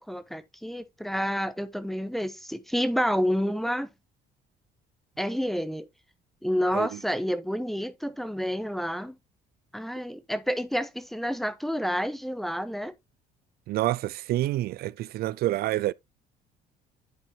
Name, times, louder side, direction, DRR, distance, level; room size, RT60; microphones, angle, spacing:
voice 1, 0.0-3.9 5.2-5.9 6.4-9.2 9.7-12.9, equal, ahead, 0.9 m, -29 dB
voice 2, 13.7-15.9, right 15 dB, 65° right, 0.4 m, -28 dB
11.0 x 4.5 x 2.9 m
cardioid pair, 110°, 17 cm